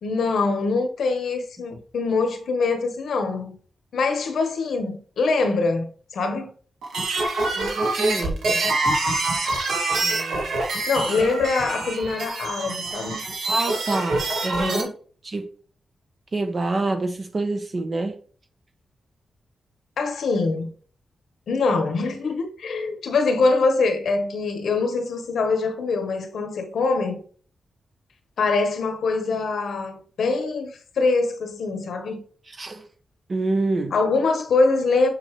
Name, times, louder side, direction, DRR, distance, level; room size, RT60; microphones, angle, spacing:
voice 1, 0.0-3.6 3.9-6.5 10.9-13.2 14.6-14.9 20.0-20.7 21.5-27.2 28.4-32.2 33.9-35.1, left 3 dB, 70° left, 1.4 m, -23 dB
sound 1, 6.8-14.8, right 2 dB, 80° right, 2.3 m, -25 dB
voice 2, 7.5-8.8 10.0-10.6 13.5-14.9 15.2-15.5 16.3-18.1 32.6-32.8 33.3-33.9, right 2 dB, 30° right, 1.0 m, -27 dB
7.1 x 6.7 x 3.3 m
wide cardioid pair, 175°, 0 cm